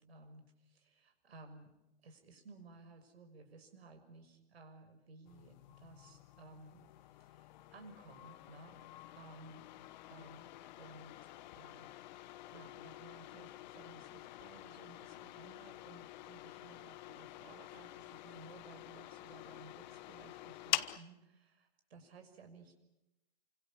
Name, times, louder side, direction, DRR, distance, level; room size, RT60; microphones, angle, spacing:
voice 1, 0.0-1.8 2.0-6.9 7.2-8.8 9.1-9.7 10.0-10.5 10.8-11.1 11.5-22.7, right 3 dB, 70° right, 6 dB, 6.1 m, -57 dB
sound 1, 5.3-21.0, left 15 dB, 45° left, 1.0 m, -47 dB
29.0 x 25.5 x 7.3 m, 0.94 s
hypercardioid pair, 130°, 32 cm